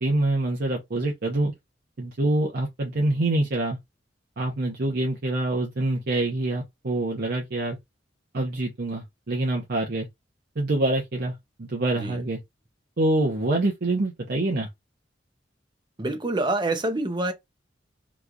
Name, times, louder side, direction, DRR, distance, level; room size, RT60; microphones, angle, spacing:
voice 1, 0.0-1.5 2.0-3.8 4.4-7.8 8.3-10.1 10.6-12.4 13.0-14.7, right 2 dB, 55° right, 0.7 m, -25 dB
voice 2, 16.0-17.3, right 2 dB, 25° right, 0.6 m, -26 dB
3.0 x 2.3 x 3.6 m
head